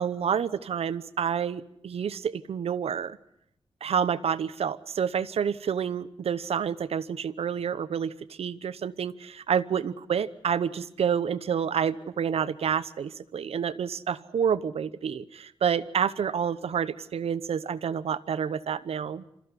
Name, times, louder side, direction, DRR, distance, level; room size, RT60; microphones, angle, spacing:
voice 1, 0.0-3.2 3.8-19.2, right 7 dB, 80° right, 15 dB, 0.9 m, -29 dB
27.5 x 14.5 x 9.7 m, 0.76 s
wide cardioid pair, 130°, 10 cm